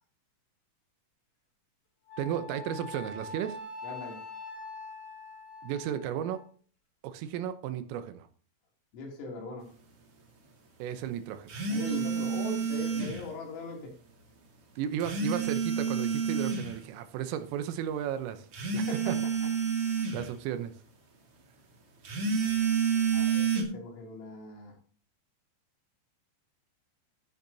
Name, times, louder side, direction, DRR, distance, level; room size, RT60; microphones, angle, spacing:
Wind instrument woodwind instrument, 2.1-6.4, left 3 dB, 35° left, 4.5 m, -43 dB
voice 1, 2.2-3.6 5.6-6.4 7.0-8.3 10.8-11.6 13.0-13.2 14.8-18.5 18.7-19.2 20.1-20.7, right 10 dB, 80° right, 10 dB, 3.4 m, -34 dB
voice 2, 3.8-4.3 8.9-9.7 11.7-13.9 18.9-19.1 23.1-24.8, left 2 dB, 75° left, -1 dB, 5.4 m, -40 dB
sound 1, 11.5-13.2 15.0-16.7 18.5-20.2 22.0-23.6, right 6 dB, 50° right, 1.8 m, -29 dB
12.0 x 10.0 x 2.7 m, 0.42 s
omnidirectional pair, 5.9 m